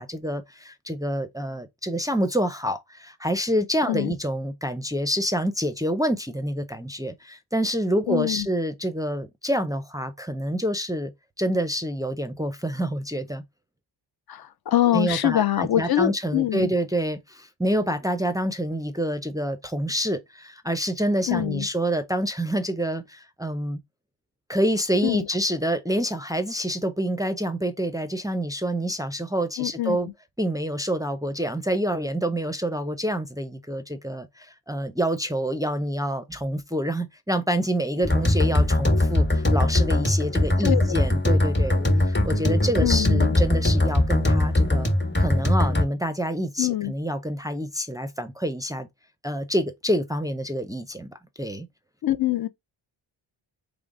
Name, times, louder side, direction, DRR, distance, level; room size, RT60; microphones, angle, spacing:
voice 1, 0.0-11.1 11.4-13.4 14.9-23.8 24.5-30.1 30.4-44.9 45.2-48.9 49.2-51.7, equal, 10° right, 0.5 m, -27 dB
voice 2, 8.1-8.5 14.3-16.7 21.3-21.7 25.0-25.3 29.6-30.0 40.6-41.0 42.8-43.4 46.6-46.9 52.0-52.5, left 12 dB, 55° left, 0.6 m, -24 dB
sound 1, 38.0-45.8, left 1 dB, 25° left, 1.3 m, -21 dB
3.7 x 3.5 x 3.6 m
cardioid pair, 105°, 45 cm